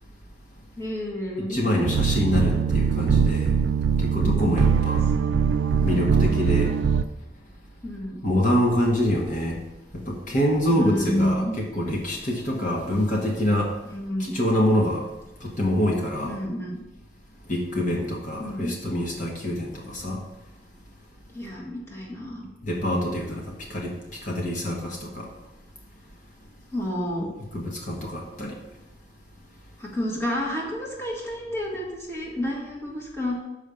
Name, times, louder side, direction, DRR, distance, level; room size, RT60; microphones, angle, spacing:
voice 1, 0.8-1.6 5.2-5.3 5.8-6.1 7.8-8.2 10.7-11.6 13.9-14.3 16.2-16.8 18.4-18.7 21.3-22.5 26.7-27.3 29.8-33.4, left 1 dB, 15° left, -3 dB, 1.4 m, -30 dB
voice 2, 1.5-3.5 4.0-5.0 5.8-6.7 8.2-9.6 9.9-13.7 14.3-15.1 15.4-16.4 17.5-20.2 22.6-23.4 23.7-23.9 24.2-25.3 27.5-28.5, left 1 dB, 45° left, -1 dB, 1.3 m, -25 dB
sound 1, 1.8-7.0, right 6 dB, 80° right, 0.4 m, -22 dB
6.4 x 5.0 x 6.8 m, 0.98 s
head